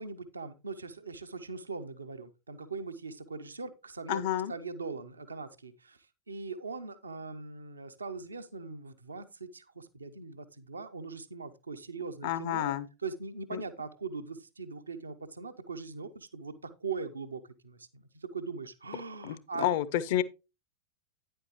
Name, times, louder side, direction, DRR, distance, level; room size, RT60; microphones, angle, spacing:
voice 1, 0.0-4.2 4.5-12.7 13.0-19.8, right 4 dB, 75° right, 0.7 m, -41 dB
voice 2, 4.1-4.5 12.2-12.9 13.5-13.6 19.2-20.2, left 12 dB, 50° left, 0.6 m, -30 dB
9.7 x 7.8 x 3.0 m
figure-of-eight pair, 90°, 0 cm